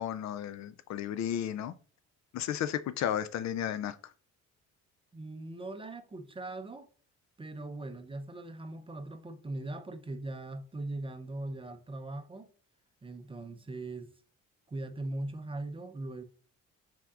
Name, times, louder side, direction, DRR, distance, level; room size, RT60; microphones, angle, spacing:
voice 1, 0.0-1.7 2.3-4.0, left 10 dB, 65° left, 0.4 m, -33 dB
voice 2, 5.1-6.9 7.4-12.5 13.0-14.1 14.7-16.2, right 2 dB, 20° right, 0.5 m, -40 dB
5.8 x 3.5 x 2.4 m
cardioid pair, 90°, 30 cm